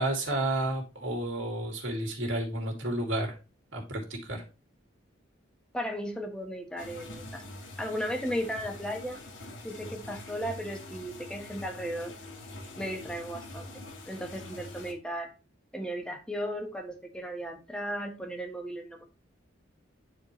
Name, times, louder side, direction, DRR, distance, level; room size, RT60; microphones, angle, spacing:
voice 1, 0.0-3.4 3.7-4.4, right 1 dB, 80° right, 1 dB, 2.4 m, -31 dB
voice 2, 5.7-7.4 7.8-9.2 9.6-12.1 12.7-13.7 14.1-15.3 15.7-19.0, equal, 5° left, 2 dB, 1.3 m, -35 dB
sound 1, 6.8-14.9, left 2 dB, 70° left, 1.5 m, -44 dB
9.7 x 4.5 x 3.2 m, 0.31 s
head